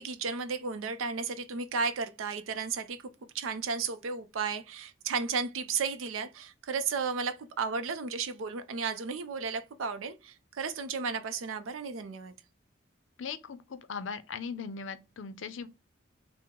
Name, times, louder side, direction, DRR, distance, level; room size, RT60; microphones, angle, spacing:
voice 1, 0.0-3.0 3.3-12.3, right 5 dB, 85° right, 0.5 m, -34 dB
voice 2, 13.2-15.7, left 5 dB, 70° left, 0.5 m, -39 dB
3.7 x 2.0 x 4.4 m
head